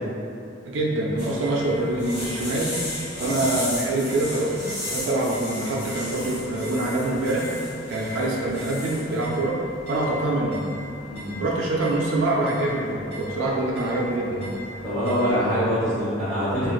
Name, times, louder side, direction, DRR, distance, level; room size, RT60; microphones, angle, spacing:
voice 1, 0.7-2.7 3.2-7.5 7.9-9.6 9.9-10.6 11.4-14.5, right 2 dB, 90° right, -3 dB, 0.4 m, -25 dB
sound 1, 1.2-15.3, left 1 dB, 40° left, 0.9 m, -36 dB
voice 2, 11.1-11.4 14.8-16.7, equal, 10° left, -17 dB, 0.8 m, -24 dB
3.0 x 2.4 x 2.3 m, 2.6 s
head